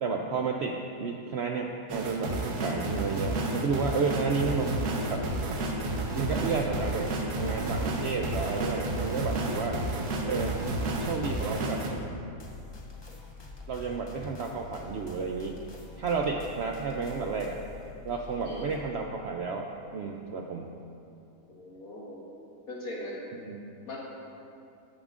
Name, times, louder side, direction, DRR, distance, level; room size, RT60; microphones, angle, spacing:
voice 1, 0.0-4.7 5.1-5.2 6.1-9.8 10.2-10.6 11.0-11.8 13.7-15.6 16.0-17.6 18.0-20.7 23.5-23.7, right 4 dB, 70° right, 1 dB, 0.6 m, -31 dB
sound 1, 1.9-11.9, right 2 dB, 90° right, 1.4 m, -31 dB
sound 2, 5.0-18.9, left 4 dB, 45° left, 0.3 m, -46 dB
voice 2, 21.5-22.2 22.7-23.2 23.9-24.0, left 1 dB, 70° left, -4 dB, 2.1 m, -40 dB
15.5 x 7.1 x 2.5 m, 2.6 s
omnidirectional pair, 1.6 m